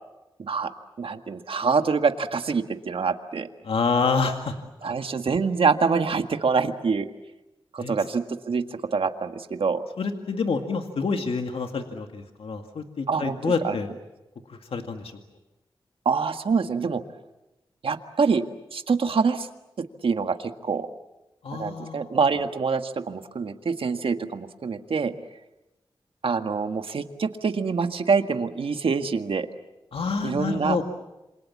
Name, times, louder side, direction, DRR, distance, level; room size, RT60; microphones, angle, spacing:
voice 1, 1.0-3.5 4.8-7.1 7.7-9.8 13.1-13.8 16.0-17.0 17.8-18.4 18.7-19.5 19.8-20.9 21.5-25.1 26.2-29.5 30.2-30.8, right 5 dB, 70° right, 7 dB, 1.7 m, -25 dB
voice 2, 3.6-4.5 4.8-4.9 7.8-7.9 10.0-13.9 14.5-15.1 21.4-22.1 29.9-30.8, left 4 dB, 80° left, 5 dB, 2.1 m, -27 dB
27.5 x 26.0 x 7.4 m, 0.99 s
wide cardioid pair, 80°, 9 cm